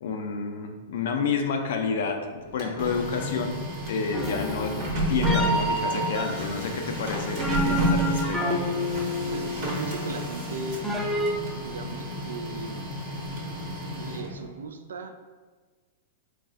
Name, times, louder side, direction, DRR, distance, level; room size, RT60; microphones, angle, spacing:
voice 1, 0.0-3.5 3.9-4.8 5.1-8.4, left 5 dB, 55° left, 4 dB, 0.4 m, -29 dB
Printer, 2.4-14.5, equal, 45° right, 1.0 m, -31 dB
sound 1, 4.1-11.3, equal, ahead, 0.6 m, -30 dB
voice 2, 9.3-10.8 11.5-12.8 14.0-15.2, right 3 dB, 65° right, 7 dB, 0.3 m, -37 dB
4.1 x 2.3 x 3.7 m, 1.4 s
figure-of-eight pair, 100°, 0 cm